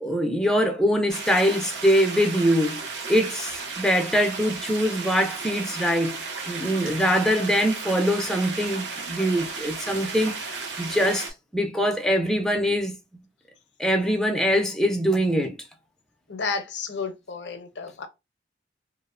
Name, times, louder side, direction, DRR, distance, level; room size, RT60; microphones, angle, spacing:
voice 1, 0.0-2.8 3.1-11.3 11.5-12.9 13.8-15.5, equal, 5° left, 0.3 m, -23 dB
sound 1, 1.1-11.3, right 4 dB, 75° right, 0.7 m, -34 dB
voice 2, 16.3-18.1, left 5 dB, 70° left, 0.5 m, -31 dB
2.8 x 2.0 x 2.3 m
head